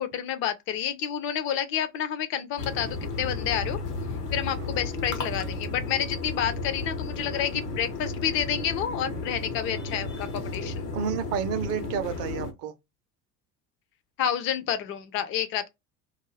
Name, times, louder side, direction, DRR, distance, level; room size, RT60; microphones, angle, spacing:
voice 1, 0.0-3.8 4.3-10.7 14.2-15.7, left 9 dB, 30° left, 0.4 m, -29 dB
sound 1, 2.6-12.5, left 3 dB, 80° left, 0.9 m, -33 dB
voice 2, 4.6-4.9 10.9-12.7, right 7 dB, 35° right, 0.5 m, -31 dB
2.4 x 2.1 x 3.1 m
figure-of-eight pair, 65°, 46 cm